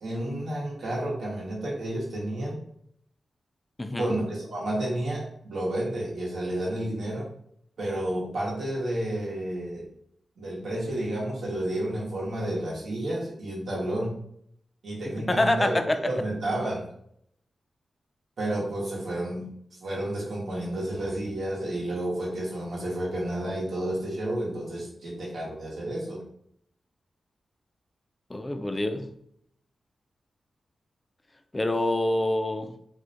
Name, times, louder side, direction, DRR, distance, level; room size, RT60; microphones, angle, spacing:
voice 1, 0.0-2.6 3.9-7.3 7.8-9.9 10.4-14.2 14.8-16.9 18.4-19.5 19.8-26.2, right 1 dB, 80° right, -4 dB, 0.8 m, -31 dB
voice 2, 3.8-4.1 15.3-16.0 28.3-29.1 31.5-32.7, left 1 dB, 25° left, 6 dB, 0.3 m, -26 dB
2.4 x 2.1 x 2.7 m, 0.67 s
cardioid pair, 50°, 0 cm